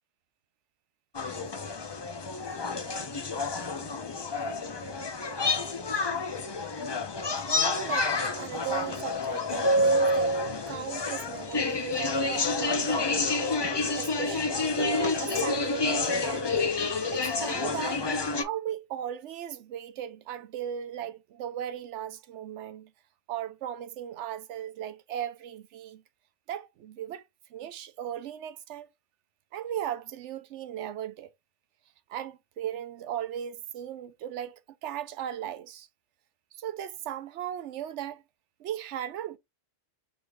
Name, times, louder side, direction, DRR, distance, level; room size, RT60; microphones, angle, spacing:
sound 1, 1.1-18.4, left 2 dB, 35° left, 0.4 m, -28 dB
voice 1, 7.5-10.4 10.7-13.3 14.0-16.6 17.1-18.0 18.4-22.9 23.3-26.0 26.5-27.2 27.5-28.9 29.5-31.3 32.1-35.9 36.6-38.2 38.6-39.4, right 10 dB, 85° right, 0.9 m, -37 dB
4.9 x 3.5 x 2.4 m
omnidirectional pair, 1.2 m